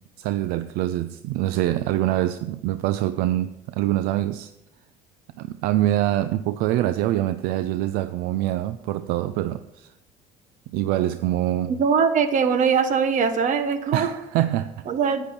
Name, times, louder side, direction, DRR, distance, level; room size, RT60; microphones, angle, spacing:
voice 1, 0.2-4.5 5.4-9.9 10.7-11.7 13.9-14.9, right 14 dB, 80° right, 0.4 m, -25 dB
voice 2, 11.7-14.1 14.9-15.3, right 6 dB, 55° right, 1.1 m, -21 dB
9.6 x 9.1 x 4.3 m
supercardioid pair, 80°, 16 cm